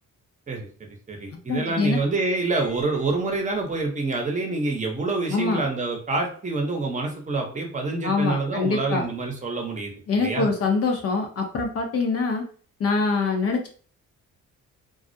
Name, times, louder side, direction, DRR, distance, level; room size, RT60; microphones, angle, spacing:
voice 1, 0.5-10.5, right 3 dB, 25° right, 1 dB, 0.7 m, -27 dB
voice 2, 1.5-2.0 5.3-5.6 8.0-9.1 10.1-12.4 12.8-13.7, left 4 dB, 50° left, 3 dB, 0.6 m, -24 dB
Piano, 2.2-3.2, left 2 dB, 70° right, 0.7 m, -40 dB
2.3 x 2.0 x 2.6 m, 0.42 s
cardioid pair, 90°, 30 cm